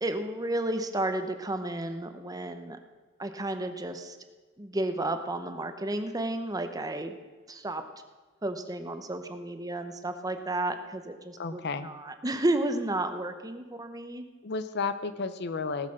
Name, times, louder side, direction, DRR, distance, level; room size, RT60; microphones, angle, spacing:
voice 1, 0.0-2.8 3.2-4.2 4.6-7.2 7.5-7.8 8.4-14.3, right 1 dB, 20° right, 8 dB, 0.8 m, -32 dB
voice 2, 11.4-11.9 14.4-15.9, left 4 dB, 55° left, 12 dB, 0.7 m, -32 dB
18.5 x 6.6 x 6.3 m, 1.3 s
head